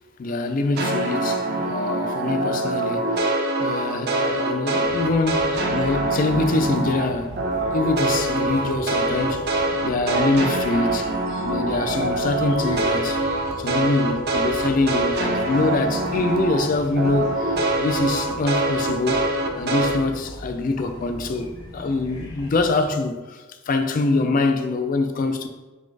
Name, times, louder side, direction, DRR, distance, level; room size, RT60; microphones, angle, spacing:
voice 1, 0.2-3.2 3.6-7.4 7.7-11.1 11.4-13.2 13.6-19.2 19.5-25.5, left 3 dB, 40° left, 0.3 m, -24 dB
sound 1, 0.8-7.1 7.4-16.7 17.0-20.0, right 2 dB, 50° right, 0.5 m, -24 dB
sound 2, 4.8-22.9, equal, 90° left, 1.0 m, -39 dB
sound 3, 5.0-11.5, right 3 dB, 80° right, 1.1 m, -40 dB
4.0 x 2.4 x 4.6 m
head